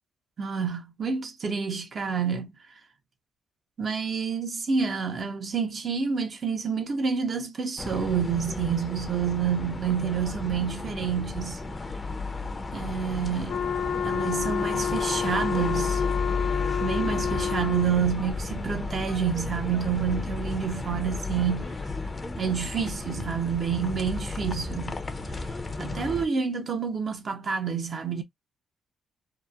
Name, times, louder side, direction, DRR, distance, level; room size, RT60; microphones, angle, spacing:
voice 1, 0.4-2.5 3.8-11.6 12.7-13.6 14.0-16.0 16.8-21.7 22.4-24.9 25.8-28.2, right 6 dB, 50° right, 0.7 m, -28 dB
sound 1, 7.8-26.3, left 3 dB, 25° left, 0.6 m, -33 dB
Wind instrument woodwind instrument, 13.5-18.1, left 8 dB, 80° left, 0.5 m, -29 dB
2.9 x 2.1 x 2.3 m
cardioid pair, 85°, 0 cm